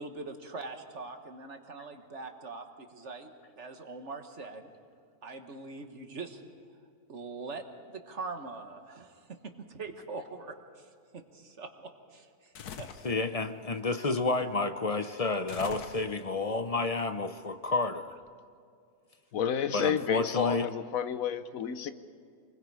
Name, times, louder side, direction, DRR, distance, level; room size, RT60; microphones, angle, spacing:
voice 1, 0.0-4.7 5.2-6.4 7.1-7.6 7.9-13.1, right 3 dB, 50° right, 6 dB, 1.7 m, -43 dB
sound 1, 12.5-13.2 15.5-16.4, left 8 dB, 90° left, 1.4 m, -43 dB
voice 2, 13.0-18.1 19.7-20.7, left 3 dB, 40° left, 9 dB, 0.5 m, -30 dB
voice 3, 19.3-21.9, left 8 dB, 65° left, 12 dB, 1.2 m, -30 dB
27.5 x 21.0 x 4.8 m, 2.3 s
omnidirectional pair, 1.6 m